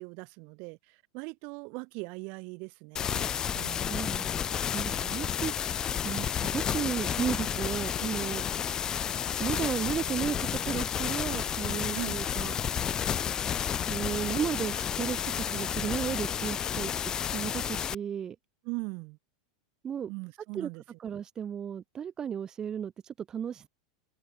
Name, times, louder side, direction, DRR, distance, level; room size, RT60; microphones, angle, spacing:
voice 1, 0.0-3.9 11.9-12.2 18.6-19.2 20.1-20.8, right 31 dB, 50° right, 4.0 m, -40 dB
sound 1, 3.0-18.0, left 8 dB, 25° left, 0.3 m, -31 dB
voice 2, 3.9-5.5 6.0-8.4 9.4-12.8 13.8-16.9 17.3-18.4 19.8-20.1 20.5-20.7 21.0-23.7, right 8 dB, 25° right, 0.8 m, -34 dB
supercardioid pair, 130°, 3 cm